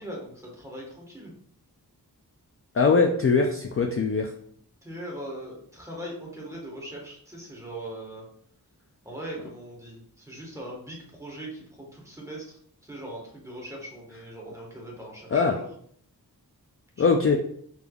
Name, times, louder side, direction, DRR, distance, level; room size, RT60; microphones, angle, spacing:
voice 1, 0.0-1.3 4.8-8.2 9.0-15.6 17.0-17.1, right 1 dB, 10° right, -3 dB, 1.4 m, -40 dB
voice 2, 2.7-4.3 15.3-15.6 17.0-17.4, left 4 dB, 35° left, 2 dB, 0.4 m, -21 dB
5.0 x 3.3 x 2.3 m, 0.64 s
wide cardioid pair, 75°, 38 cm